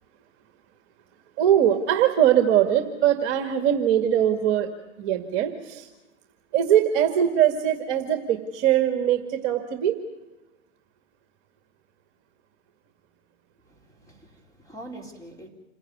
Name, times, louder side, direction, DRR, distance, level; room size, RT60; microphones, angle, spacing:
voice 1, 1.4-5.9 6.5-10.0, right 10 dB, 35° right, 6 dB, 2.0 m, -22 dB
voice 2, 13.7-15.5, right 1 dB, 10° left, 1 dB, 4.2 m, -44 dB
28.0 x 16.0 x 9.5 m, 1.1 s
hypercardioid pair, 130°, 36 cm